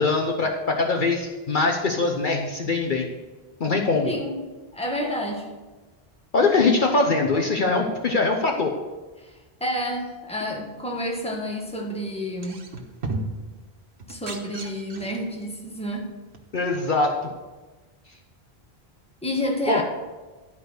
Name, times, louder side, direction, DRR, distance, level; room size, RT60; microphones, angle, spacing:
voice 1, 0.0-3.1 3.6-4.1 6.3-8.7 16.5-17.1 19.7-19.8, left 3 dB, 55° left, 1 dB, 1.0 m, -22 dB
voice 2, 4.0-4.4 4.7-5.5 9.2-9.3 9.6-12.7 14.1-16.1 19.2-19.8, equal, 5° left, 1 dB, 1.3 m, -29 dB
sound 1, 12.3-13.5 14.0-15.3 16.3-16.4, right 2 dB, 80° right, 1.4 m, -34 dB
11.5 x 4.9 x 6.4 m, 1.2 s
omnidirectional pair, 1.1 m